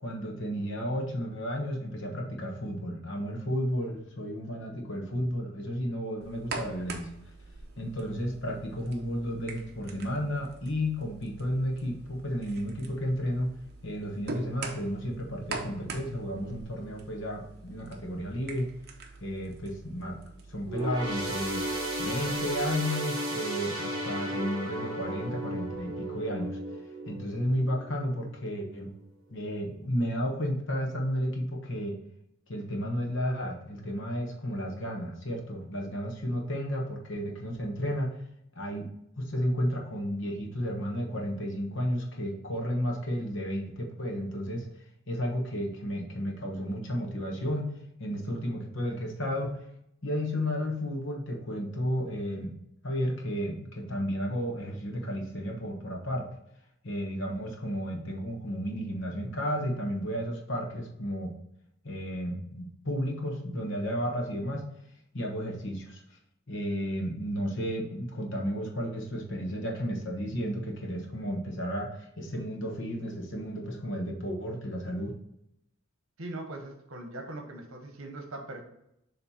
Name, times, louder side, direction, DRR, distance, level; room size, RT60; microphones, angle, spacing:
voice 1, 0.0-7.1 7.8-13.5 13.8-18.7 19.2-20.2 20.5-21.6 22.0-26.6 27.1-28.9 29.3-32.0 32.5-38.1 38.5-38.9 39.2-44.7 45.1-47.7 48.0-49.6 50.0-52.5 52.8-56.3 56.8-61.3 61.8-64.6 65.1-66.0 66.5-75.1, equal, 60° left, 1 dB, 1.2 m, -32 dB
sound 1, 6.2-22.7, right 3 dB, 50° right, 0.8 m, -44 dB
sound 2, 20.7-28.4 28.8-29.0 29.8-29.9, right 1 dB, 25° right, 1.9 m, -35 dB
voice 2, 76.2-78.6, right 2 dB, 75° right, 3 dB, 1.0 m, -40 dB
7.1 x 3.3 x 4.2 m, 0.79 s
head